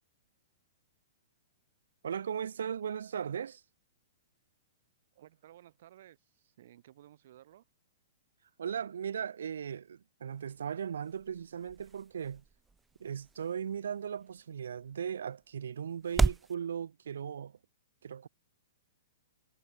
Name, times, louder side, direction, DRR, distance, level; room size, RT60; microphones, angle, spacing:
voice 1, 2.0-3.6 8.6-12.4 13.0-17.6 18.0-18.3, right 8 dB, 90° right, 2.5 m, -37 dB
voice 2, 5.1-7.6, right 12 dB, 55° right, 4.1 m, -57 dB
sound 1, 10.3-16.5, right 4 dB, 5° right, 0.5 m, -37 dB
hypercardioid pair, 165°, 0 cm